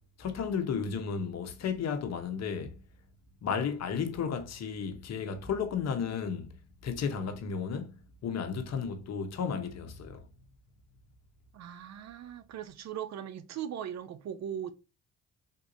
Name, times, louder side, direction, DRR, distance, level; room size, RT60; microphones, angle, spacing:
voice 1, 0.2-2.8 3.4-10.2, left 6 dB, 60° left, 0.8 m, -33 dB
voice 2, 11.5-14.7, right 9 dB, 65° right, 0.6 m, -39 dB
3.7 x 2.6 x 2.5 m
cardioid pair, 90°, 30 cm